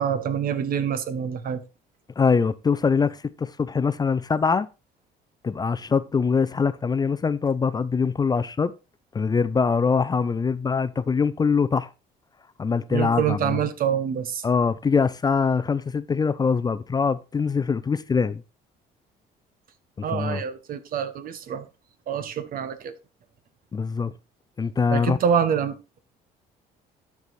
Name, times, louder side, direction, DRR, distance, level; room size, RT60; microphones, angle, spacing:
voice 1, 0.0-1.6 12.9-14.4 20.0-21.6 22.1-22.9 24.9-25.8, right 8 dB, 60° right, 1.1 m, -26 dB
voice 2, 2.2-4.7 5.4-8.7 9.1-11.9 12.6-13.6 14.4-18.4 20.0-20.4 23.7-24.1 24.6-25.2, left 5 dB, 25° left, 0.5 m, -23 dB
12.0 x 4.8 x 4.2 m
cardioid pair, 110°, 17 cm